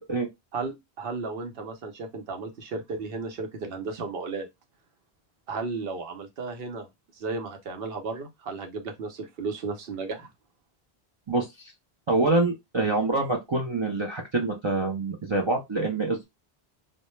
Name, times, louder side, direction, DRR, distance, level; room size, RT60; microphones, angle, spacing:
voice 1, 0.5-4.5 5.5-6.9 7.2-10.3, right 4 dB, 70° right, 0.8 m, -34 dB
voice 2, 11.3-11.7 12.1-16.2, right 2 dB, 50° right, 0.3 m, -26 dB
2.1 x 2.0 x 3.0 m
omnidirectional pair, 1.1 m